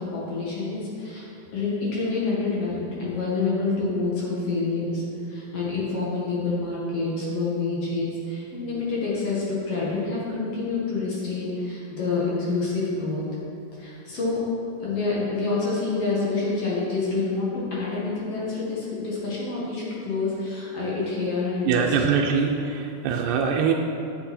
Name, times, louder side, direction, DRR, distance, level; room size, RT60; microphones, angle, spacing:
voice 1, 0.1-1.3 1.5-13.2 13.7-14.4 14.8-22.0, left 3 dB, 55° left, -6 dB, 2.3 m, -27 dB
voice 2, 21.7-23.7, right 6 dB, 90° right, 1 dB, 2.2 m, -23 dB
8.7 x 7.9 x 4.3 m, 2.8 s
omnidirectional pair, 3.7 m